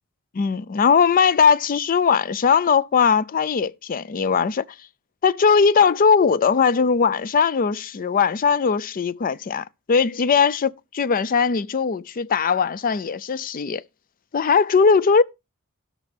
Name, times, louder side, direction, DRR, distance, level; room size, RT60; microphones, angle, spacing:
voice 1, 0.3-4.6 5.2-13.8 14.3-15.2, left 6 dB, 40° left, 0.4 m, -19 dB
16.5 x 6.0 x 3.4 m
head